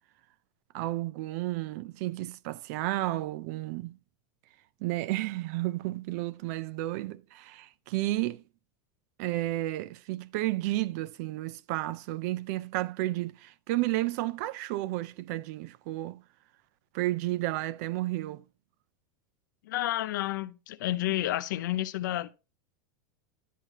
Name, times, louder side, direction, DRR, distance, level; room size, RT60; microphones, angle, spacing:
voice 1, 0.7-4.0 4.8-8.4 9.2-16.2 16.9-18.4, right 17 dB, 55° right, 0.4 m, -32 dB
voice 2, 19.6-22.3, left 15 dB, 80° left, 0.6 m, -30 dB
10.0 x 6.4 x 2.9 m
supercardioid pair, 145°, 10 cm